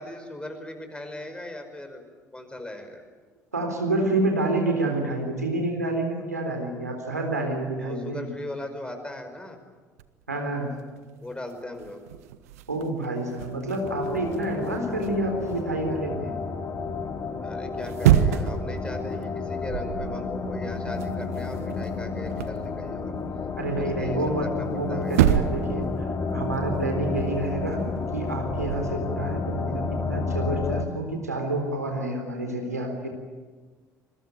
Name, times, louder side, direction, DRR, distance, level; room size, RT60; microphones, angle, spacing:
voice 1, 0.0-2.0 2.3-3.0 7.8-9.6 11.2-12.0 17.4-23.1 23.7-25.4, left 1 dB, 10° left, 6 dB, 5.3 m, -38 dB
voice 2, 3.5-8.3 10.3-10.7 12.7-16.4 23.6-25.9 26.3-27.8 28.1-33.1, right 2 dB, 85° right, 3 dB, 3.8 m, -28 dB
sound 1, 10.0-10.3 11.0-11.1 11.3-15.6 17.7-18.7 19.1-19.3 19.6-20.2 20.5-22.7 24.6-24.7 25.1-25.8 26.0-28.9, right 11 dB, 70° right, 1.0 m, -27 dB
sound 2, 13.8-30.8, left 4 dB, 35° left, 2.6 m, -31 dB
27.5 x 22.0 x 9.5 m, 1.4 s
figure-of-eight pair, 55°, 9 cm